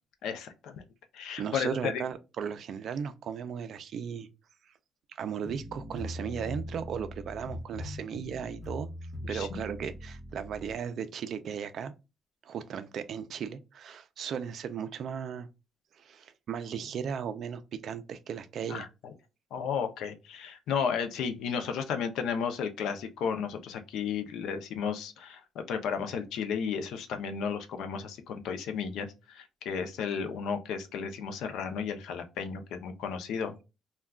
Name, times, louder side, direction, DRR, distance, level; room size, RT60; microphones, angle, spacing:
voice 1, 0.2-0.8 1.1-2.0 6.2-6.5 9.3-9.6 18.7-19.1 19.5-33.6, left 6 dB, 85° left, 0.5 m, -33 dB
voice 2, 1.4-4.3 5.2-8.9 9.3-11.9 12.4-15.5 16.0-18.9, right 7 dB, 55° right, 0.3 m, -36 dB
sound 1, 5.4-10.8, left 1 dB, 5° right, 0.8 m, -41 dB
2.2 x 2.2 x 3.4 m
cardioid pair, 155°, 0 cm